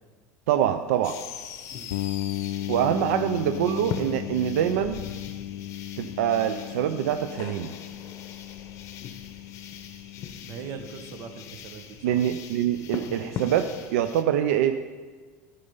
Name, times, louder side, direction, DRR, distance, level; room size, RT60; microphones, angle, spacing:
voice 1, 0.5-1.2 2.7-5.0 6.0-7.7 12.0-14.8, right 10 dB, 85° right, 9 dB, 0.5 m, -25 dB
sound 1, 1.0-14.2, left 7 dB, 45° left, 0.8 m, -40 dB
voice 2, 1.7-2.0 2.8-3.1 10.4-12.2, right 6 dB, 50° right, 7 dB, 1.1 m, -41 dB
sound 2, 1.9-11.6, left 14 dB, 80° left, 0.4 m, -36 dB
12.0 x 5.3 x 5.5 m, 1.4 s
supercardioid pair, 140°, 7 cm